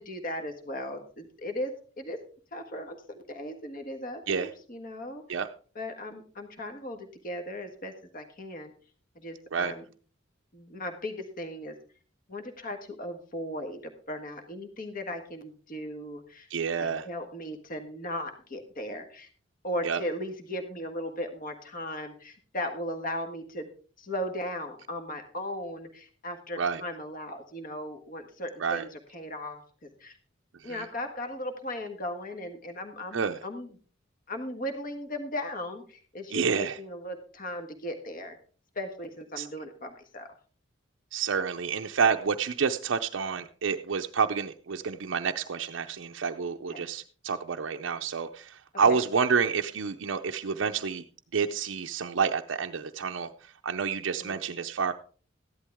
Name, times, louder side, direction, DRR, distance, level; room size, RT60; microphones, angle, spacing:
voice 1, 0.0-2.2 2.5-5.4 5.7-8.7 9.1-9.8 10.5-11.8 12.3-16.5 16.8-19.3 19.6-23.7 24.0-30.2 30.6-33.7 34.3-38.4 38.7-40.3 46.7-46.9 48.8-49.0 54.2-54.4, left 1 dB, 45° left, 6 dB, 1.5 m, -37 dB
voice 2, 16.5-17.1 19.8-20.0 26.6-26.8 28.6-28.8 30.6-30.8 33.1-33.4 36.3-36.8 39.4-39.5 41.1-51.0 51.3-53.3 53.6-54.9, right 6 dB, 75° right, 4 dB, 0.6 m, -29 dB
14.0 x 11.5 x 3.5 m, 0.41 s
head